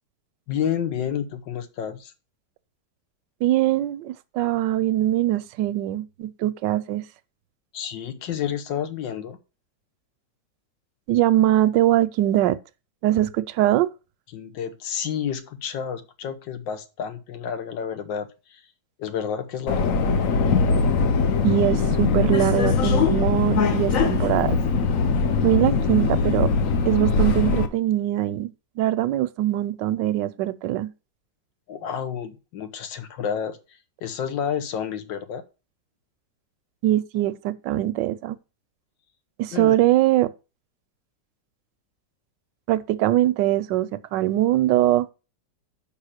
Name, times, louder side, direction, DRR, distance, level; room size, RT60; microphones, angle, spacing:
voice 1, 0.5-2.1 7.7-9.4 14.3-18.6 19.0-19.9 31.7-35.4 39.5-39.8, left 8 dB, 90° left, 1.6 m, -30 dB
voice 2, 3.4-7.0 11.1-12.6 13.0-13.9 21.4-24.6 25.4-26.5 26.8-30.9 36.8-38.4 39.4-40.3 42.7-45.1, right 14 dB, 80° right, 1.2 m, -22 dB
Subway metro underground, 19.7-27.7, left 4 dB, 55° left, 1.1 m, -21 dB
5.6 x 5.3 x 6.5 m
omnidirectional pair, 1.9 m